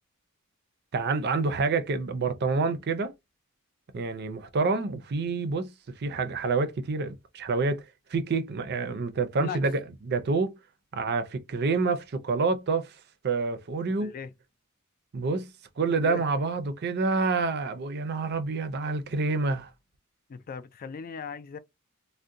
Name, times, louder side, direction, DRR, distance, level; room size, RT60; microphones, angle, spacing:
voice 1, 0.9-3.1 3.9-7.8 8.1-9.7 10.0-10.6 10.9-12.9 13.2-14.1 15.1-15.5 15.8-19.7, right 4 dB, 50° right, 0.5 m, -27 dB
voice 2, 13.9-14.3 16.0-16.2 20.3-21.6, left 6 dB, 40° left, 0.3 m, -38 dB
3.6 x 2.1 x 2.6 m
head